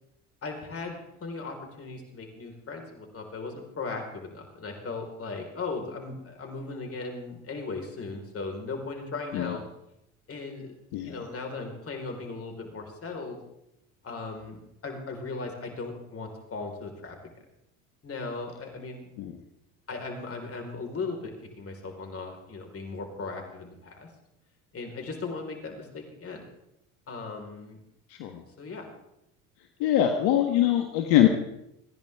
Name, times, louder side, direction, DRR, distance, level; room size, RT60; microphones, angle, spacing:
voice 1, 0.4-9.6 10.3-10.7 11.0-13.4 14.0-17.2 18.0-19.1 19.9-24.1 24.7-26.4 27.1-27.8 28.6-28.9, left 3 dB, 35° left, 2 dB, 4.7 m, -37 dB
voice 2, 29.8-31.3, left 12 dB, 70° left, 5 dB, 1.6 m, -23 dB
29.0 x 10.5 x 3.7 m, 0.84 s
hypercardioid pair, 80°, 39 cm